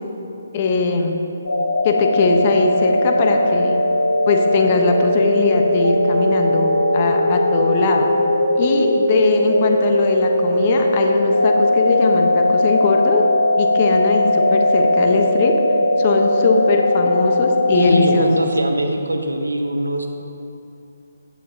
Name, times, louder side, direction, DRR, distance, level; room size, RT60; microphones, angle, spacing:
voice 1, 0.5-1.2 1.8-3.8 4.3-8.1 8.5-13.3 13.6-15.5 16.0-18.3, left 4 dB, 35° left, 3 dB, 1.1 m, -20 dB
sound 1, 1.5-18.2, left 1 dB, 75° left, 1.0 m, -18 dB
voice 2, 17.7-20.1, right 1 dB, 80° right, 4 dB, 1.2 m, -21 dB
15.0 x 10.5 x 2.9 m, 2.7 s
figure-of-eight pair, 140°, 0 cm